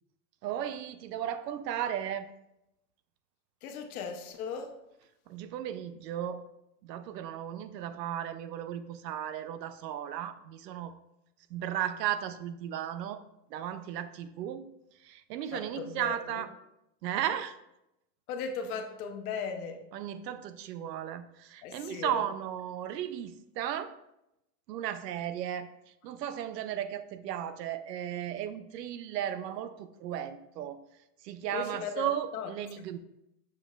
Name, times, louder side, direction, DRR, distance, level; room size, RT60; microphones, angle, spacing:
voice 1, 0.4-2.3 5.3-6.5 6.8-10.9 11.5-13.2 13.5-14.7 15.0-16.5 17.0-17.6 19.9-23.9 24.7-25.7 26.0-30.8 31.2-33.0, right 10 dB, 90° right, 12 dB, 0.7 m, -35 dB
voice 2, 3.6-4.8 15.5-16.4 18.3-19.9 21.6-22.3 31.5-32.1 32.3-32.5 32.8-32.9, left 6 dB, 65° left, 4 dB, 1.1 m, -37 dB
6.9 x 6.8 x 2.4 m, 0.86 s
supercardioid pair, 160°, 48 cm